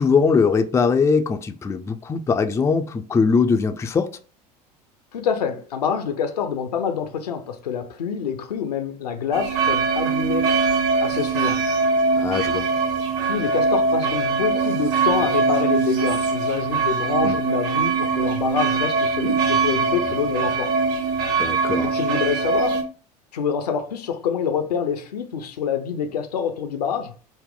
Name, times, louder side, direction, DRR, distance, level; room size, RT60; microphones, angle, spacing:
voice 1, 0.0-4.1 12.2-12.7 17.2-17.4 21.4-21.9, left 5 dB, 15° left, 0.4 m, -21 dB
voice 2, 5.1-10.7 11.0-11.6 13.2-20.7 21.8-22.8 23.3-27.1, left 7 dB, 75° left, 0.6 m, -26 dB
sound 1, 9.3-22.8, right 4 dB, 50° right, 1.3 m, -22 dB
4.0 x 2.1 x 3.6 m
figure-of-eight pair, 75°, 21 cm